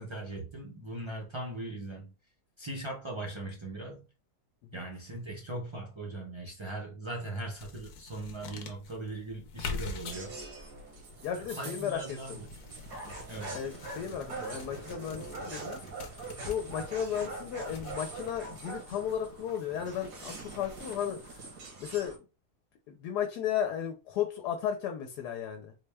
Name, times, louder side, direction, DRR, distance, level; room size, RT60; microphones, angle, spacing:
voice 1, 0.0-2.1 2.6-4.0 4.7-10.4 11.3-12.5 13.3-13.6, right 2 dB, 45° right, 0.3 m, -39 dB
sound 1, 7.6-19.4, left 4 dB, 65° left, 1.0 m, -45 dB
sound 2, 10.0-22.2, right 3 dB, 80° right, 1.8 m, -43 dB
voice 2, 11.2-12.4 13.5-15.8 16.1-21.4 21.8-22.2 22.9-25.7, left 9 dB, 85° left, 1.2 m, -35 dB
4.0 x 2.2 x 3.3 m
omnidirectional pair, 1.7 m